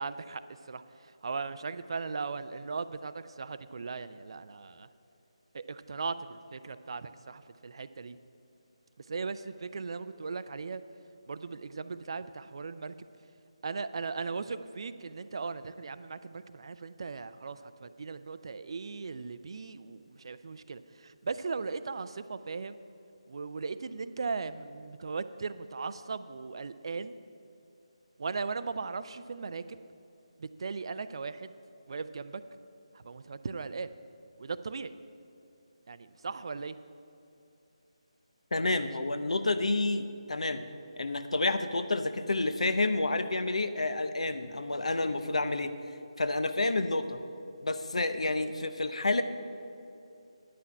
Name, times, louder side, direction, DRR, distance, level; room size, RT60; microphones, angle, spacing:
voice 1, 0.0-4.9 5.5-8.2 9.0-10.8 11.3-13.1 13.6-22.8 23.3-27.2 28.2-29.8 30.4-31.5 31.9-32.4 32.9-33.9 34.4-34.9 35.9-36.8 38.6-38.9, right 4 dB, 50° right, 13 dB, 0.4 m, -38 dB
voice 2, 38.5-40.6 41.0-45.7 46.2-47.2 47.6-49.2, left 2 dB, 70° left, 10 dB, 0.7 m, -29 dB
9.5 x 5.9 x 8.5 m, 2.7 s
figure-of-eight pair, 155°, 3 cm